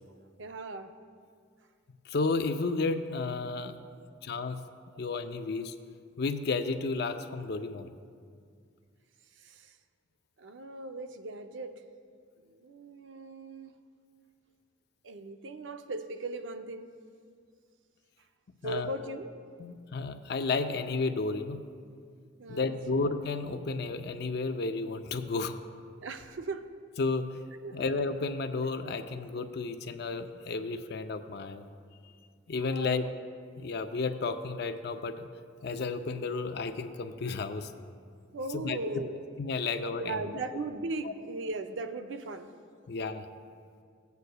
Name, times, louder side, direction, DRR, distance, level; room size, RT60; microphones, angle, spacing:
voice 1, 0.4-0.9 3.8-4.2 4.9-5.1 9.4-9.8 10.4-11.8 12.4-13.7 15.0-16.9 18.6-19.3 22.4-22.7 26.0-26.7 27.6-27.8 32.6-33.1 38.3-39.2 40.0-42.5, right 2 dB, 75° right, 8 dB, 0.5 m, -38 dB
voice 2, 2.1-3.8 4.2-4.6 5.0-5.7 6.2-8.0 18.6-18.9 19.6-21.6 22.5-25.6 27.0-27.3 27.7-31.7 32.5-33.0 33.6-35.3 35.6-37.7 38.5-39.0 39.4-40.4 42.9-43.2, left 3 dB, 60° left, 8 dB, 0.5 m, -32 dB
17.0 x 8.1 x 2.2 m, 2.2 s
head